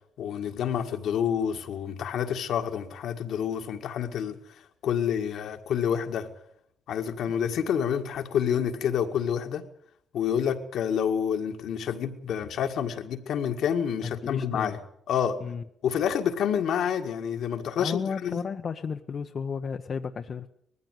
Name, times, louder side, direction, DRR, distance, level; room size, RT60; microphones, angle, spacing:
voice 1, 0.2-4.4 4.8-6.3 6.9-9.6 10.1-14.8 15.1-15.4 15.8-18.4, left 8 dB, 75° left, 5 dB, 1.9 m, -28 dB
voice 2, 14.0-14.8 15.4-15.6 17.8-20.5, left 6 dB, 50° left, 6 dB, 0.8 m, -33 dB
20.0 x 14.5 x 9.3 m, 0.71 s
cardioid pair, 90°, 0 cm